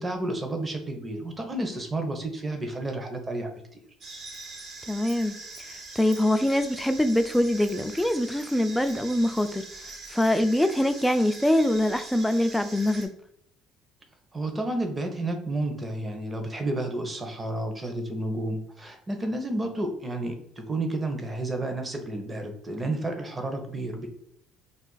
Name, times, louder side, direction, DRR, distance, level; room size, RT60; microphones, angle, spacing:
voice 1, 0.0-3.5 14.3-24.1, right 1 dB, 20° right, 0.7 m, -31 dB
sound 1, 4.0-13.1, right 3 dB, 50° right, 0.9 m, -43 dB
voice 2, 4.9-5.4 6.0-9.7 10.1-13.1, left 1 dB, 5° left, 0.3 m, -24 dB
2.4 x 2.4 x 3.8 m
cardioid pair, 115°, 0 cm